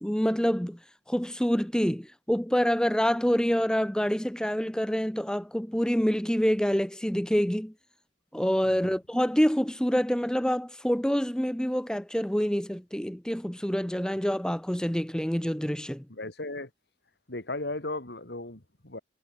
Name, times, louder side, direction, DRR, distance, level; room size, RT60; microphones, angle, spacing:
voice 1, 0.0-0.8 1.1-7.7 8.3-16.0, equal, 5° left, 1.1 m, -26 dB
voice 2, 16.1-16.7 17.3-19.0, left 2 dB, 65° left, 3.1 m, -36 dB
head